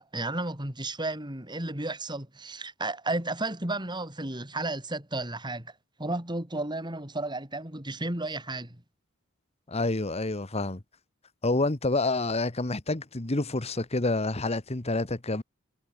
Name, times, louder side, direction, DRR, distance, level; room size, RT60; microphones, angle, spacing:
voice 1, 0.0-5.7 6.0-8.8, right 2 dB, 20° right, 4.1 m, -33 dB
voice 2, 9.7-10.8 11.4-15.4, left 2 dB, 30° left, 1.3 m, -28 dB
head